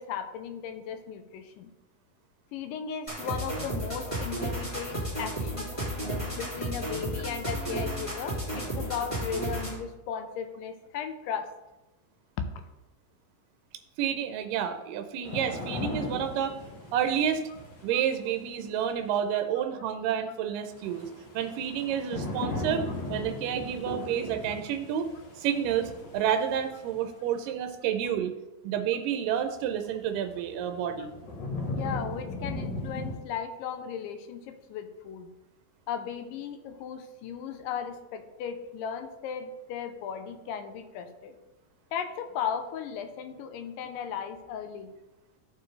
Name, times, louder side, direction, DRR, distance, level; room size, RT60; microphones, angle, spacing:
voice 1, 0.0-1.7 2.5-5.7 6.4-11.5 12.4-12.6 31.6-35.3 35.9-41.4 41.9-44.9, left 7 dB, 90° left, 8 dB, 2.3 m, -36 dB
sound 1, 3.1-9.9, right 1 dB, 15° left, 1.4 m, -33 dB
voice 2, 14.0-16.6 16.9-17.4 17.8-21.1 21.4-25.1 25.4-28.3 28.6-31.1, right 9 dB, 90° right, 7 dB, 2.2 m, -29 dB
sound 2, 15.2-18.3 20.7-27.0 29.7-29.8 30.3-33.2, left 2 dB, 65° left, 1.1 m, -37 dB
13.5 x 4.5 x 3.2 m, 1.0 s
omnidirectional pair, 3.8 m